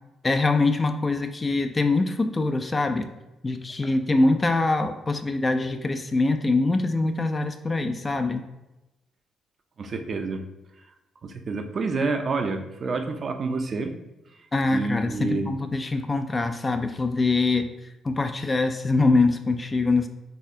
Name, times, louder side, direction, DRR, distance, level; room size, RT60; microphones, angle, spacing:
voice 1, 0.2-3.1 3.4-8.4 14.5-17.7 18.0-20.1, left 3 dB, 25° left, 7 dB, 0.3 m, -23 dB
voice 2, 9.8-10.4 11.2-13.9 14.7-15.5, right 3 dB, 45° right, 5 dB, 0.4 m, -28 dB
4.0 x 2.6 x 2.7 m, 0.96 s
cardioid pair, 90°, 0 cm